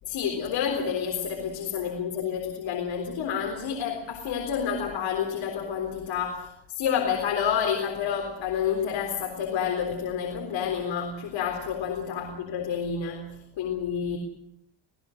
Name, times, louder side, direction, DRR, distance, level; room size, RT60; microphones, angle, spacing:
voice 1, 0.0-14.2, left 7 dB, 70° left, 2 dB, 3.9 m, -29 dB
29.5 x 18.5 x 6.6 m, 0.77 s
cardioid pair, 110°, 47 cm